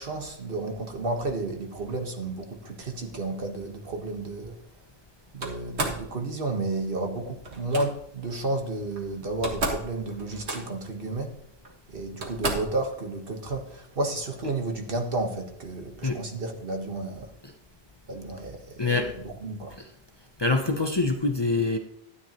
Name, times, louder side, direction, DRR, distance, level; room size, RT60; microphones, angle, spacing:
voice 1, 0.0-4.6 5.3-11.4 11.9-17.3 18.1-19.7, right 2 dB, 60° right, 3 dB, 1.6 m, -32 dB
Slam, 5.4-6.1 7.4-7.9 9.0-9.1 9.3-9.9 10.2-10.9 11.6-11.7 12.2-12.8, right 2 dB, 90° right, 1.9 m, -31 dB
voice 2, 18.8-19.1 19.8-19.9 20.4-21.8, left 3 dB, 25° left, 4 dB, 0.8 m, -25 dB
12.5 x 9.7 x 3.0 m, 0.73 s
omnidirectional pair, 1.1 m